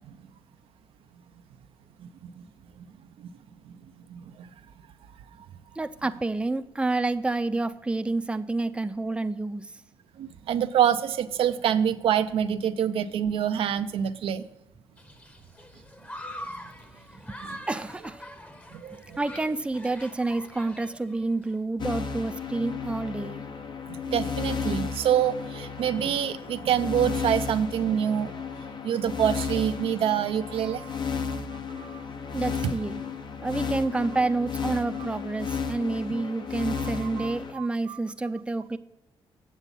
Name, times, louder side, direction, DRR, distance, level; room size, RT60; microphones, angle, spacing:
voice 1, 2.0-2.4 3.2-3.3 3.7-3.8 4.1-4.5 10.2-14.4 17.5-17.6 18.7-19.0 23.9-28.4 28.6-31.4 31.7-32.0 36.6-36.7 37.0-38.0, right 9 dB, 75° right, 10 dB, 0.5 m, -27 dB
voice 2, 5.8-9.7 17.3-17.4 17.7-18.2 18.9-23.4 32.3-33.0 33.4-38.8, right 2 dB, 10° right, 10 dB, 0.5 m, -29 dB
Human group actions, 15.0-21.5, equal, 15° left, 1.0 m, -43 dB
sound 1, 21.8-37.5, left 5 dB, 55° left, 0.9 m, -33 dB
8.3 x 7.0 x 5.4 m, 0.92 s
cardioid pair, 80°, 10 cm